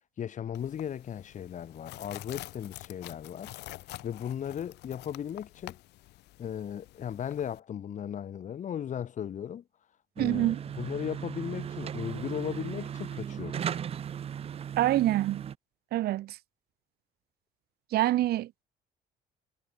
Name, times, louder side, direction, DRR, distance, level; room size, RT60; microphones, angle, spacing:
voice 1, 0.2-3.5 4.0-5.8 6.4-9.6 10.2-13.8, left 9 dB, 45° left, 1.9 m, -36 dB
sound 1, 0.5-7.6, left 18 dB, 85° left, 3.9 m, -47 dB
sound 2, 10.2-15.5, right 8 dB, 35° right, 0.5 m, -37 dB
voice 2, 10.2-10.6 14.8-15.5 15.9-16.4 17.9-18.6, right 15 dB, 70° right, 1.0 m, -26 dB
cardioid pair, 110°, 17 cm